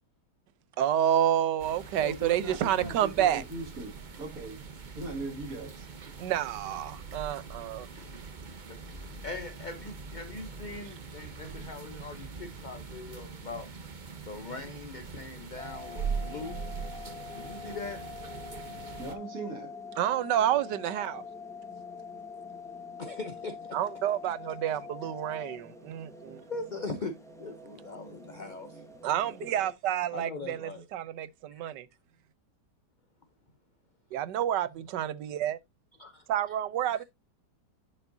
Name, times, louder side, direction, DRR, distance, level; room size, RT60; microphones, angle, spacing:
voice 1, 0.8-3.4 6.2-7.9 20.0-21.2 23.7-26.4 29.0-31.9 34.1-35.6 36.3-37.0, right 11 dB, 80° right, 1.3 m, -29 dB
sound 1, 1.6-19.2, right 5 dB, 35° right, 0.9 m, -42 dB
voice 2, 2.0-4.6 4.9-5.9 19.0-19.7, right 2 dB, 55° right, 2.6 m, -39 dB
voice 3, 9.2-13.7 14.2-16.7 17.3-18.0 23.0-23.8 25.0-25.1 26.5-27.1 27.4-28.8 29.4-29.5 30.1-30.8 31.5-31.6 34.1-34.2 36.0-36.2 37.0-37.1, left 3 dB, 45° left, 0.6 m, -41 dB
sound 2, 15.6-25.6, left 6 dB, 65° left, 1.7 m, -44 dB
sound 3, 15.9-29.7, equal, ahead, 1.0 m, -50 dB
10.5 x 5.4 x 2.6 m
omnidirectional pair, 1.8 m